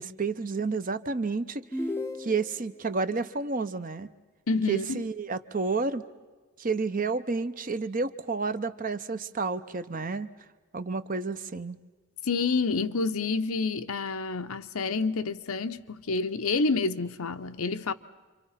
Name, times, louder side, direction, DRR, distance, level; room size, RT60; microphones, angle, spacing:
voice 1, 0.0-1.6 2.2-4.1 4.7-6.0 6.6-10.3 10.7-11.8, right 4 dB, 40° right, 0.8 m, -30 dB
sound 1, 1.7-2.8, left 1 dB, 10° left, 0.7 m, -34 dB
voice 2, 4.5-5.0 12.2-17.9, left 4 dB, 80° left, 0.8 m, -28 dB
28.5 x 25.5 x 5.8 m
head